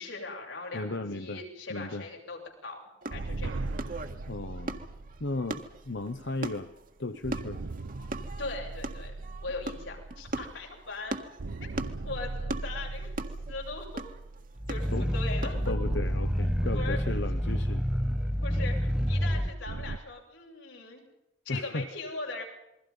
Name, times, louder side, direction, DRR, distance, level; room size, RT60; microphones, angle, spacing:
voice 1, 0.0-2.8 3.1-3.5 8.4-9.1 9.4-11.2 11.6-11.7 12.0-13.1 13.5-14.0 14.7-15.7 16.7-17.0 18.4-21.0 21.4-22.4, left 3 dB, 90° left, 0 dB, 8.0 m, -39 dB
voice 2, 0.7-1.4 1.7-2.1 4.3-4.8 5.2-6.7 7.0-7.6 14.9-15.1 15.7-17.8 21.5-21.9, left 2 dB, 65° left, 9 dB, 1.1 m, -35 dB
sound 1, 3.0-15.7, right 2 dB, 45° right, 1.7 m, -40 dB
sound 2, 3.1-6.7 7.2-11.0 11.4-15.0 15.5-20.0, right 2 dB, 90° right, 0.8 m, -39 dB
Growling, 14.6-19.5, equal, 5° right, 1.0 m, -28 dB
28.0 x 22.5 x 5.5 m, 0.91 s
head